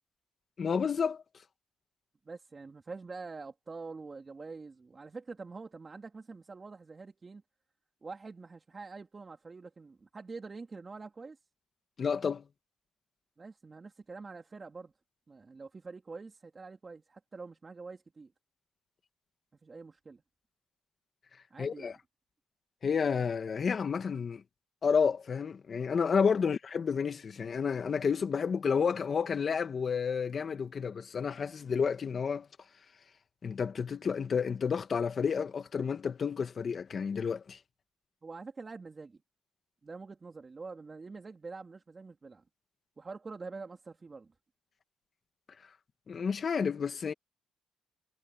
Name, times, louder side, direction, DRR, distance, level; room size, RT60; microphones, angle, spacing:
voice 1, 0.6-1.2 12.0-12.4 21.6-21.9 22.8-24.4 24.8-32.5 33.4-37.6 46.1-47.1, left 6 dB, 45° left, 2.3 m, -30 dB
voice 2, 2.3-7.4 8.0-11.4 13.4-14.9 15.3-18.3 19.6-20.2 21.5-21.9 38.2-39.2 39.8-42.4 43.0-44.3, right 4 dB, 30° right, 3.7 m, -46 dB
cardioid pair, 90°, 0 cm